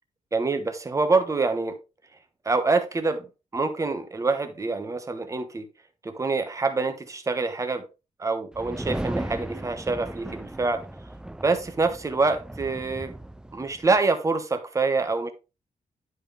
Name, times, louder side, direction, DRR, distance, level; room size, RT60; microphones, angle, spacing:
voice 1, 0.3-1.8 2.4-5.7 6.0-7.8 8.2-10.8 11.4-13.2 13.5-15.3, right 3 dB, 25° right, 1.1 m, -26 dB
sound 1, 8.5-14.0, right 1 dB, 5° right, 0.4 m, -36 dB
11.0 x 5.1 x 3.3 m
wide cardioid pair, 165°, 14 cm